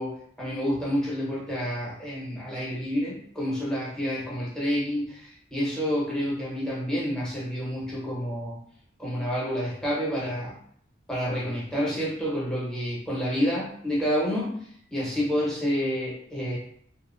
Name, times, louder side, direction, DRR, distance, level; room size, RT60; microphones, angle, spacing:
voice 1, 0.0-8.6 9.0-10.6 11.1-16.6, equal, 5° left, -7 dB, 0.8 m, -29 dB
2.8 x 2.0 x 2.4 m, 0.63 s
head